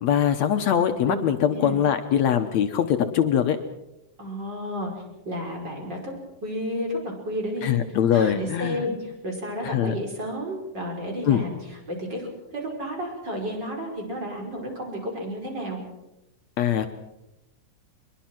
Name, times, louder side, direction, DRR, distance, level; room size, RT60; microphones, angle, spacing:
voice 1, 0.0-3.6 7.6-8.9 9.6-10.0 11.3-11.4 16.6-16.9, left 9 dB, 70° left, 7 dB, 2.2 m, -22 dB
voice 2, 4.2-4.9 5.2-6.1 6.4-7.7 8.1-15.8, equal, 35° right, 1 dB, 5.9 m, -32 dB
22.5 x 22.0 x 6.1 m, 0.89 s
omnidirectional pair, 3.5 m